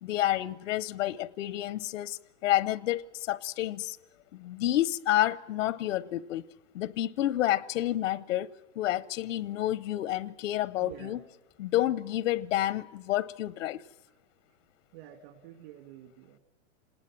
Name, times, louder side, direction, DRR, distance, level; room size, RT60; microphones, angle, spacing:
voice 1, 0.0-4.0 4.3-6.4 6.7-8.5 8.8-11.2 11.6-13.8, left 14 dB, 85° left, 0.8 m, -29 dB
voice 2, 10.8-11.2 14.9-16.4, right 11 dB, 55° right, 2.3 m, -48 dB
26.5 x 19.5 x 7.4 m
supercardioid pair, 155°, 37 cm